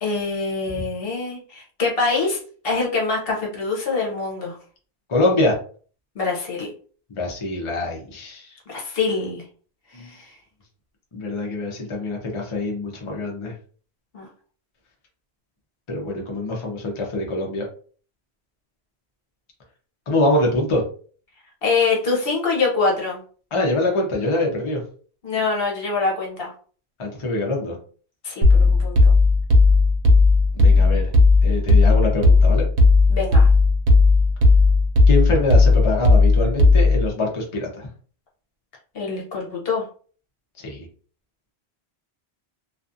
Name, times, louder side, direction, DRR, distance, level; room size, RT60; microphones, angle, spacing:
voice 1, 0.0-2.4 2.6-4.6 6.1-6.7 8.7-9.4 9.9-10.3 14.1-14.3 21.6-23.2 25.2-26.5 28.2-29.1 33.1-33.5 38.9-39.9, left 4 dB, 60° left, -1 dB, 1.0 m, -24 dB
voice 2, 5.1-5.6 7.1-8.5 9.9-10.1 11.1-13.5 15.9-17.6 20.1-20.8 23.5-24.8 27.0-27.8 30.5-31.1 31.4-32.6 35.1-37.9 40.6-40.9, left 2 dB, 35° left, -1 dB, 0.6 m, -24 dB
sound 1, 28.4-37.1, left 3 dB, 85° right, 0.9 m, -15 dB
2.4 x 2.3 x 2.6 m, 0.42 s
omnidirectional pair, 1.1 m